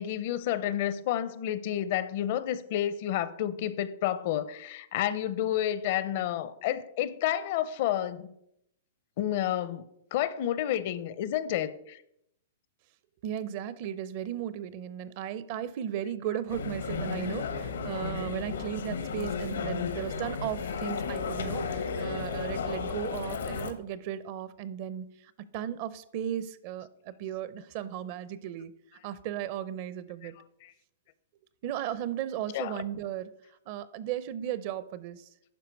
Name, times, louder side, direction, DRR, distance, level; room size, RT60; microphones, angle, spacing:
voice 1, 0.0-8.3 9.2-12.0 16.3-16.4 18.5-18.8 30.2-30.3 30.6-30.7 32.5-32.8, left 11 dB, 50° left, 0.6 m, -30 dB
voice 2, 13.2-25.2 25.5-28.7 29.0-30.4 31.6-33.3 33.7-35.3, right 10 dB, 45° right, 0.6 m, -36 dB
sound 1, 16.5-23.7, left 5 dB, 85° left, 1.2 m, -34 dB
11.5 x 4.7 x 4.6 m
hypercardioid pair, 140°, 0 cm